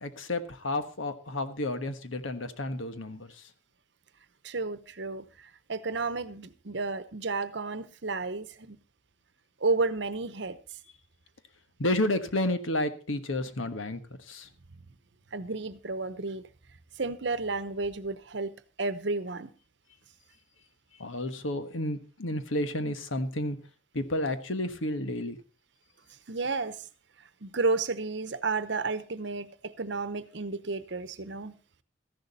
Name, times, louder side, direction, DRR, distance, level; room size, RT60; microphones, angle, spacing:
voice 1, 0.0-3.3 11.8-14.0 14.3-14.5 21.0-23.6 23.9-25.4, left 1 dB, 85° left, 1.4 m, -31 dB
voice 2, 4.4-8.8 9.6-10.6 15.3-16.4 17.0-18.5 18.8-19.5 26.3-26.9 27.4-31.5, right 3 dB, 60° right, 0.9 m, -32 dB
14.0 x 11.0 x 4.1 m
head